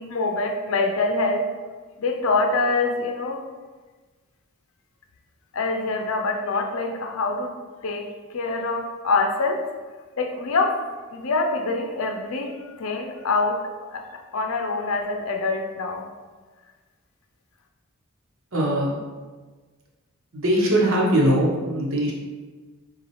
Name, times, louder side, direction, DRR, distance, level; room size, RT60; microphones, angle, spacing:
voice 1, 0.0-1.5 2.0-3.4 5.5-7.5 7.8-9.6 10.2-10.8 11.1-13.6 13.9-14.0 14.3-16.0, left 3 dB, 70° left, 3 dB, 0.6 m, -25 dB
voice 2, 18.5-18.9 20.3-22.1, right 1 dB, 65° right, -3 dB, 1.0 m, -21 dB
7.0 x 2.4 x 3.1 m, 1.4 s
head